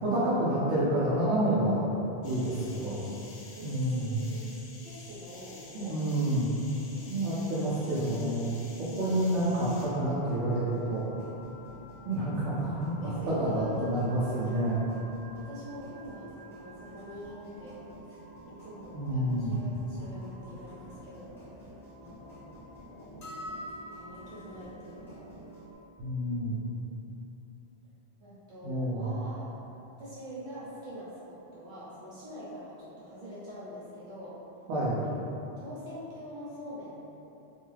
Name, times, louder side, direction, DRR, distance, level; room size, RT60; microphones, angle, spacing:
voice 1, 0.0-1.9 2.2-3.0 3.6-4.2 5.7-6.5 7.1-8.5 8.8-11.1 12.1-12.9 13.3-14.8 18.9-19.6 26.0-26.6 28.6-29.1 34.7-35.0, right 1 dB, 90° right, -10 dB, 0.9 m, -28 dB
sound 1, 2.2-9.9, left 3 dB, 80° left, 0.8 m, -50 dB
voice 2, 3.5-4.5 4.8-6.0 6.7-7.1 13.0-13.7 14.4-14.6 15.3-17.8 18.1-18.2 18.4-21.7 22.0-23.2 24.0-25.3 26.3-26.5 26.8-27.0 28.2-29.6 30.0-34.4 35.0-35.1 35.6-37.1, equal, 50° right, -11 dB, 0.8 m, -45 dB
sound 2, 9.2-25.7, equal, 5° left, 0.5 m, -49 dB
sound 3, 23.2-24.6, left 1 dB, 40° left, 0.7 m, -42 dB
2.6 x 2.3 x 3.1 m, 3.0 s
omnidirectional pair, 1.1 m